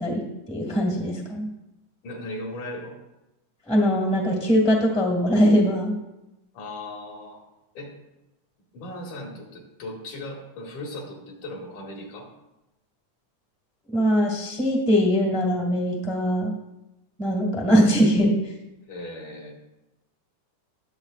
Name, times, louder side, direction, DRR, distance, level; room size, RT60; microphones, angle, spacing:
voice 1, 0.0-1.5 3.7-6.0 13.9-16.5 17.2-18.5, equal, 5° left, 0 dB, 0.6 m, -21 dB
voice 2, 2.0-2.9 6.5-7.4 7.7-7.9 8.7-12.3 18.9-19.5, left 1 dB, 75° left, -1 dB, 3.4 m, -37 dB
20.0 x 7.0 x 2.5 m, 0.96 s
omnidirectional pair, 3.6 m